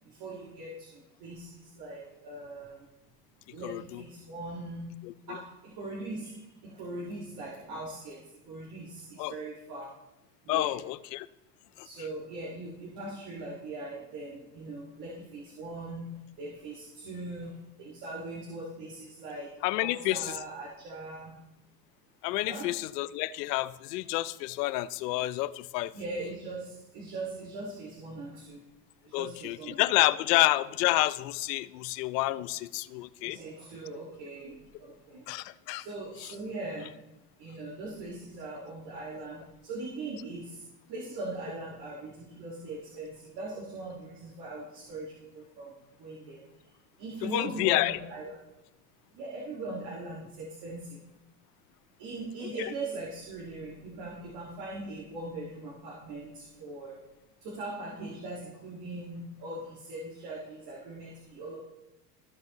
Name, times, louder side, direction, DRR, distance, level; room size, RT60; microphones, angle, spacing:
voice 1, 0.0-2.9 3.4-10.0 10.4-10.8 11.7-21.4 22.5-22.8 25.9-28.6 29.0-29.8 30.3-30.5 33.2-35.3 35.7-37.0 37.4-46.7 47.0-48.4 49.1-51.0 52.0-57.1 57.4-61.6, right 2 dB, 55° right, -3 dB, 2.0 m, -40 dB
voice 2, 3.6-4.0 5.0-5.4 9.2-9.3 10.5-11.3 11.8-11.9 19.6-20.3 22.2-25.9 29.1-33.4 35.3-35.9 47.2-48.0 52.6-52.7, left 17 dB, 80° left, 16 dB, 0.6 m, -29 dB
14.5 x 5.2 x 3.0 m, 0.96 s
supercardioid pair, 115°, 48 cm